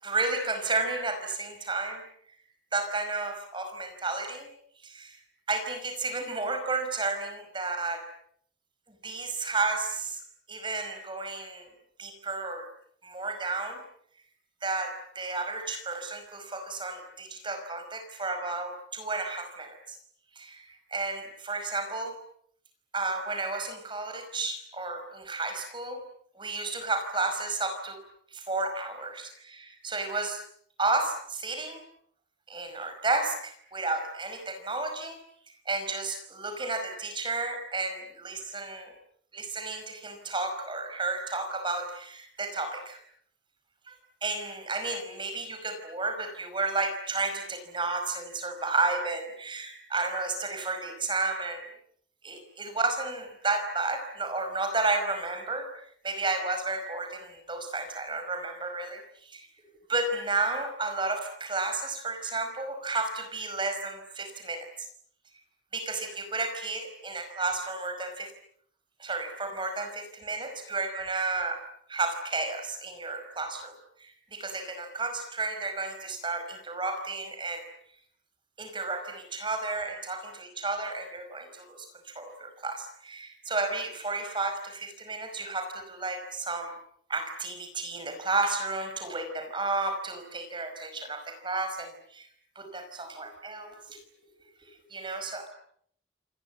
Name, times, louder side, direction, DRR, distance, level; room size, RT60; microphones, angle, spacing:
voice 1, 0.0-2.0 2.7-4.5 4.8-5.2 5.5-8.0 9.0-10.2 10.5-11.7 12.0-12.7 13.0-13.8 14.6-20.0 20.4-22.1 22.9-26.0 26.4-28.0 28.3-30.4 30.8-31.8 32.5-35.2 35.7-38.9 39.3-43.0 43.9-44.0 44.2-51.6 52.2-55.7 56.0-59.0 59.3-59.5 59.9-64.9 65.7-68.3 69.0-71.6 71.9-77.7 78.6-86.7 87.1-92.3 92.6-94.0 94.9-95.5, right 3 dB, 25° right, 8 dB, 5.2 m, -32 dB
28.5 x 25.5 x 7.6 m, 0.66 s
head